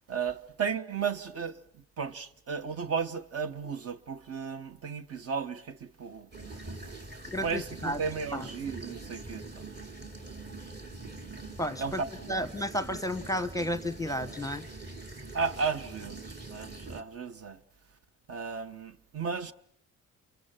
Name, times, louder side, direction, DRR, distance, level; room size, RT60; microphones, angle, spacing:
voice 1, 0.1-1.6 2.0-7.0 7.4-9.6 11.8-12.4 15.3-17.6 18.3-19.5, right 5 dB, 50° right, 1.1 m, -34 dB
sound 1, 6.3-17.0, right 2 dB, 35° right, 2.5 m, -44 dB
voice 2, 7.3-8.0 8.3-8.5 11.6-12.0 12.3-14.6 16.9-17.0, equal, 10° left, 0.9 m, -32 dB
29.0 x 23.5 x 5.9 m
cardioid pair, 90°, 30 cm